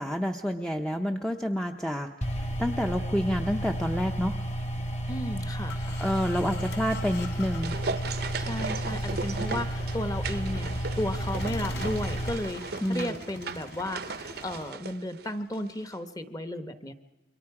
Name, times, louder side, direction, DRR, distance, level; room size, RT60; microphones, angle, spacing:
voice 1, 0.0-2.1 2.4-4.4 6.0-7.8 12.8-13.1, equal, 5° left, 4 dB, 0.6 m, -29 dB
sound 1, 2.2-12.3, equal, 35° left, 1.8 m, -32 dB
voice 2, 5.1-6.0 8.3-16.9, left 1 dB, 20° left, 9 dB, 1.0 m, -34 dB
sound 2, 5.7-14.7, left 3 dB, 70° left, 3.4 m, -45 dB
sound 3, 7.0-15.7 15.9-16.0, right 4 dB, 55° right, 0.7 m, -37 dB
28.0 x 23.5 x 4.9 m, 1.0 s
head